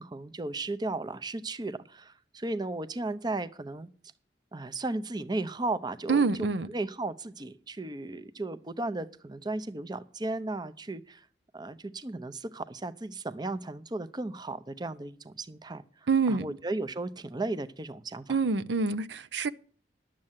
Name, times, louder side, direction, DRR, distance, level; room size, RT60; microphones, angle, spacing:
voice 1, 0.0-3.9 4.5-6.5 6.7-11.3 11.5-15.8 16.3-18.4, right 2 dB, 25° right, 0.7 m, -35 dB
voice 2, 6.1-6.7 16.1-16.6 18.3-19.5, right 4 dB, 85° right, 0.6 m, -26 dB
11.0 x 7.6 x 7.3 m
head